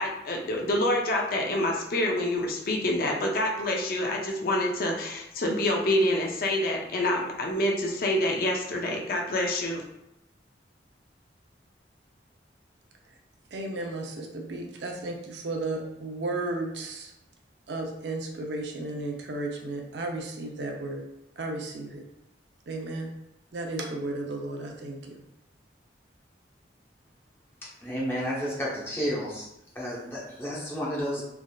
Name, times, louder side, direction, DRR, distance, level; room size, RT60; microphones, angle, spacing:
voice 1, 0.0-9.8, left 1 dB, 55° left, 1 dB, 0.4 m, -27 dB
voice 2, 13.5-17.1 17.7-21.1 21.4-22.0 22.7-23.1 23.5-25.1, right 2 dB, 75° right, 1 dB, 0.5 m, -34 dB
voice 3, 27.8-29.5 29.7-31.2, equal, 15° left, -6 dB, 0.8 m, -31 dB
3.3 x 2.4 x 2.3 m, 0.85 s
head